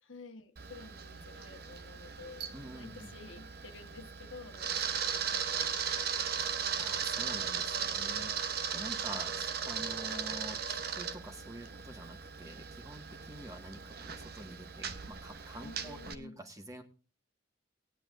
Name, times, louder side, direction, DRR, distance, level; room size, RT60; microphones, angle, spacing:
voice 1, 0.0-6.4 15.6-16.4, left 3 dB, 85° left, 7 dB, 1.3 m, -51 dB
Camera, 0.6-16.1, right 7 dB, 55° right, 0.9 m, -37 dB
voice 2, 2.5-3.1 6.8-16.8, right 1 dB, 15° right, 5 dB, 1.6 m, -47 dB
19.0 x 10.0 x 2.5 m, 0.36 s
head